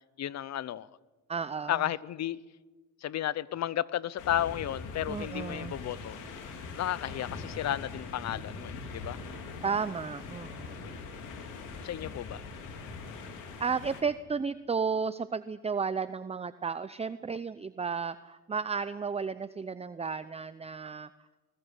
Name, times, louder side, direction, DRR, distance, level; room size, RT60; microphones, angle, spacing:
voice 1, 0.2-0.9 1.7-2.4 3.0-6.2 6.8-9.2 11.8-12.4, left 11 dB, 60° left, 0.8 m, -33 dB
voice 2, 1.3-1.8 5.1-5.8 9.6-10.9 13.6-21.1, right 5 dB, 20° right, 0.7 m, -33 dB
sound 1, 4.2-14.0, left 4 dB, 90° left, 3.7 m, -42 dB
22.0 x 19.5 x 8.2 m
cardioid pair, 90°, 30 cm